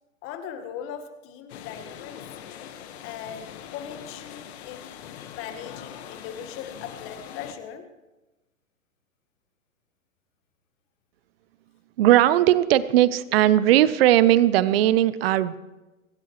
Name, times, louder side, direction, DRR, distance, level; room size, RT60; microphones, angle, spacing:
voice 1, 0.2-2.2 3.0-4.9 5.3-7.9, left 8 dB, 30° left, 8 dB, 1.6 m, -39 dB
sound 1, 1.5-7.5, left 9 dB, 50° left, 1.4 m, -42 dB
voice 2, 12.0-15.6, right 13 dB, 45° right, 17 dB, 0.8 m, -18 dB
25.5 x 13.5 x 3.1 m, 1.1 s
hypercardioid pair, 115°, 41 cm